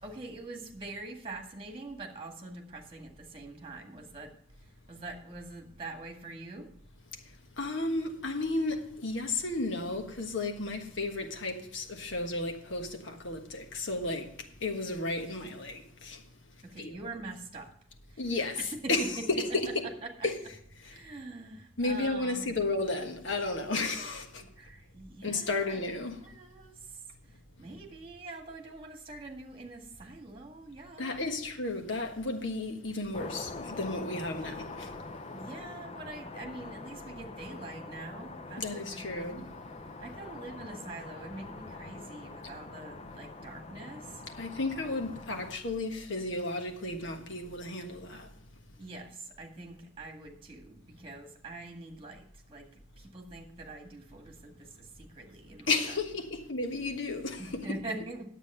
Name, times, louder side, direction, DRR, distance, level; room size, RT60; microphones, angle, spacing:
voice 1, 0.0-4.4 4.9-6.7 16.6-17.7 18.1-18.2 18.6-19.3 20.0-20.1 20.8-22.6 24.4-25.8 26.1-31.2 35.3-39.5 40.0-44.2 48.8-55.7 57.4-58.3, right 2 dB, 30° right, 1.9 m, -44 dB
voice 2, 7.6-16.2 16.8-17.0 18.2-19.9 20.2-20.4 20.8-20.9 21.8-24.4 25.2-26.2 31.0-34.9 38.6-39.5 44.4-48.3 55.7-57.8, left 2 dB, 75° left, 1.4 m, -33 dB
sound 1, 33.1-45.5, left 3 dB, 30° left, 0.6 m, -44 dB
9.8 x 8.2 x 5.5 m
head